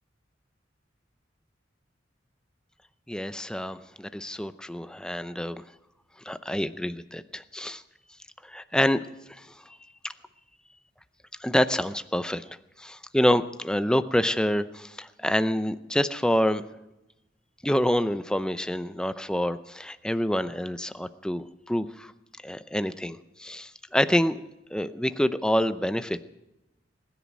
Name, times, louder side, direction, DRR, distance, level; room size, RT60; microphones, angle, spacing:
voice 1, 3.1-5.6 6.2-7.8 8.4-9.0 9.3-9.8 10.0-10.1 11.4-12.4 12.8-16.6 17.6-22.1 22.4-24.4 24.7-26.2, equal, 5° left, 12 dB, 0.6 m, -27 dB
20.5 x 10.5 x 6.2 m, 0.94 s
head